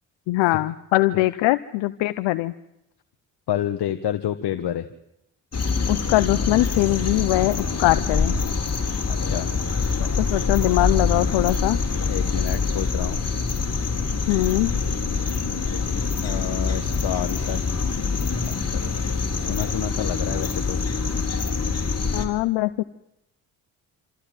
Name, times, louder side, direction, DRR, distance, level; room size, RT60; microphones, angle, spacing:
voice 1, 0.3-2.5 5.9-8.4 10.0-11.8 14.3-14.8 22.1-22.8, left 18 dB, 80° left, 14 dB, 0.8 m, -22 dB
voice 2, 3.5-4.8 9.1-9.5 12.1-13.2 16.2-17.7 18.8-18.9 19.5-20.8, left 11 dB, 65° left, 8 dB, 1.3 m, -28 dB
sound 1, 5.5-22.2, left 4 dB, 35° left, 4.0 m, -25 dB
27.0 x 15.0 x 9.1 m, 0.83 s
supercardioid pair, 50°, 43 cm